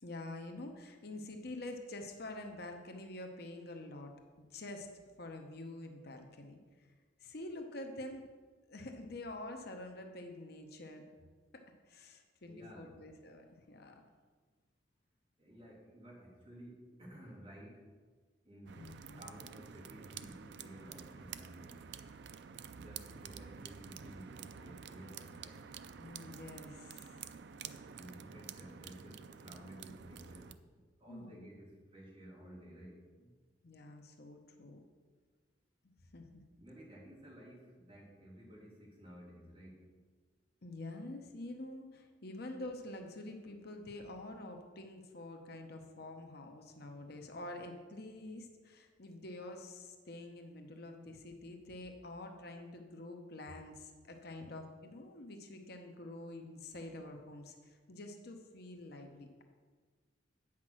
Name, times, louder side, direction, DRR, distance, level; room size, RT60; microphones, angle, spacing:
voice 1, 0.0-4.9 5.2-6.9 7.2-8.2 8.7-11.0 11.5-14.0 18.8-19.2 26.0-27.2 31.1-31.5 33.6-34.8 35.8-36.4 40.6-59.4, left 2 dB, 60° left, 4 dB, 0.9 m, -47 dB
voice 2, 12.5-12.9 15.4-18.0 18.4-21.9 22.7-25.7 27.9-30.6 31.0-33.3 36.6-40.1, equal, 30° right, -6 dB, 3.1 m, -54 dB
sound 1, 18.7-30.5, right 7 dB, 65° right, 0.4 m, -50 dB
8.8 x 6.0 x 6.1 m, 1.4 s
head